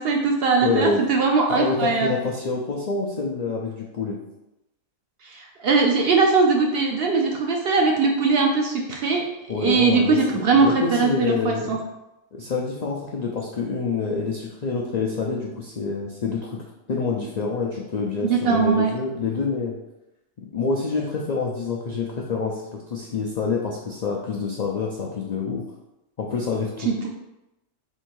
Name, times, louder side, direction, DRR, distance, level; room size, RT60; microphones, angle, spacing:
voice 1, 0.0-2.2 5.2-9.2 9.6-11.8 18.2-18.9 26.9-27.1, right 4 dB, 60° right, 1 dB, 0.6 m, -20 dB
voice 2, 0.6-1.0 1.5-4.2 9.5-11.8 12.3-16.6 16.9-19.7 20.5-25.6 26.2-26.9, left 4 dB, 80° left, -2 dB, 0.3 m, -27 dB
3.7 x 2.7 x 4.5 m, 0.94 s
omnidirectional pair, 1.4 m